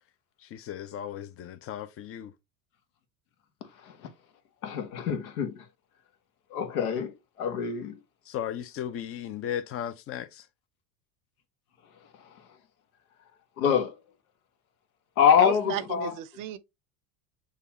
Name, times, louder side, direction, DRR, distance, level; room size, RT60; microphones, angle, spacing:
voice 1, 0.4-2.3 8.3-10.4, left 10 dB, 35° left, 0.6 m, -36 dB
voice 2, 4.6-5.6 6.5-7.9 13.6-13.9 15.2-16.1, left 8 dB, 80° left, 1.1 m, -25 dB
voice 3, 15.4-16.6, right 13 dB, 50° right, 0.6 m, -35 dB
6.6 x 2.4 x 2.8 m
supercardioid pair, 95°, 43 cm